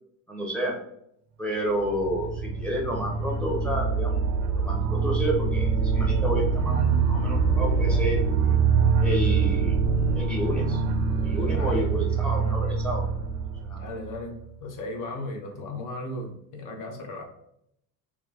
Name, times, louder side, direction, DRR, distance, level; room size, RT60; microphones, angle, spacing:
voice 1, 0.3-0.7 1.4-4.3 4.6-8.2 9.0-9.8 10.1-10.8 11.2-13.1 13.6-13.8, right 1 dB, ahead, -1 dB, 0.7 m, -30 dB
sound 1, 1.6-14.5, right 5 dB, 35° right, 0.5 m, -24 dB
voice 2, 11.5-11.9 13.8-17.3, left 2 dB, 40° left, 3 dB, 0.8 m, -36 dB
3.0 x 2.2 x 2.4 m, 0.75 s
supercardioid pair, 90°, 49 cm